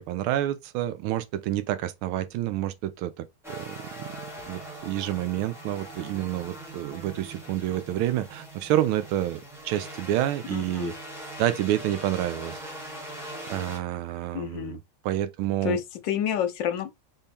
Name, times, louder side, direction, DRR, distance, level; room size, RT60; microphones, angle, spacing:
voice 1, 0.0-4.2 4.5-10.9 11.4-12.6 13.5-15.8, right 13 dB, 80° right, 1.5 m, -29 dB
sound 1, 3.4-13.8, right 1 dB, ahead, 1.1 m, -41 dB
voice 2, 10.5-10.9 14.3-14.8 15.6-16.9, left 9 dB, 70° left, 1.3 m, -29 dB
4.3 x 3.7 x 3.3 m
omnidirectional pair, 2.3 m